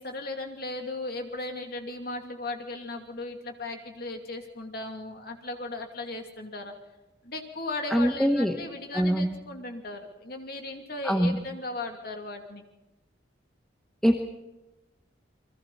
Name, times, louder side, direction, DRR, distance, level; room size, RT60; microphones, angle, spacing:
voice 1, 0.0-6.7 7.2-12.6, left 2 dB, 55° left, 3 dB, 2.8 m, -37 dB
voice 2, 7.9-8.6 8.9-9.4 11.0-11.4 14.0-14.2, equal, ahead, 4 dB, 1.1 m, -23 dB
29.5 x 21.5 x 4.3 m, 1.0 s
head